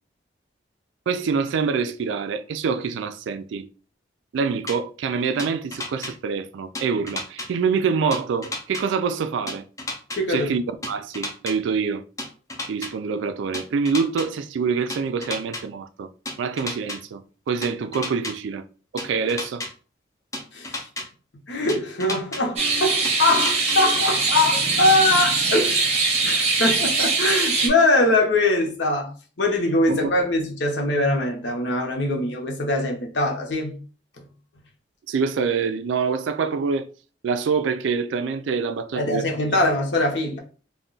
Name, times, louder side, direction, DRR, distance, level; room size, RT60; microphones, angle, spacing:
voice 1, 1.1-3.7 4.3-9.6 10.3-12.0 12.7-16.1 16.4-18.6 18.9-19.6 29.9-30.1 35.1-36.9 37.2-39.3, right 5 dB, 80° right, 0.3 m, -25 dB
sound 1, 4.7-4.8 5.4-6.1 6.7-7.5 8.1-8.8 9.5-10.2 10.8-11.5 12.2-12.9 13.5-14.3 14.9-15.6 16.3-17.0 17.6-18.3 19.0-19.7 20.3-21.0 21.7-22.4 23.0-23.8, left 2 dB, 15° left, 0.5 m, -31 dB
voice 2, 10.2-10.5 20.5-20.8 21.5-25.9 26.2-29.1 29.4-33.7 39.0-40.4, left 2 dB, 70° left, 0.7 m, -22 dB
sound 2, 22.6-27.7, right 3 dB, 35° right, 0.6 m, -22 dB
2.3 x 2.2 x 3.8 m
head